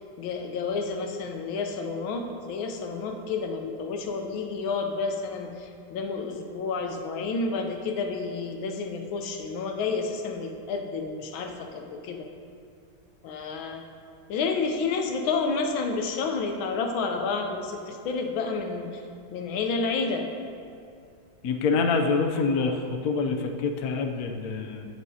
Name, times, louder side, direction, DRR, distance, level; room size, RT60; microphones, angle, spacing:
voice 1, 0.2-12.3 13.2-13.8 14.3-19.0 19.3-20.3, left 4 dB, 90° left, 4 dB, 1.6 m, -30 dB
voice 2, 21.4-24.9, left 4 dB, 65° left, 3 dB, 1.0 m, -26 dB
16.5 x 6.2 x 2.8 m, 2.4 s
omnidirectional pair, 2.1 m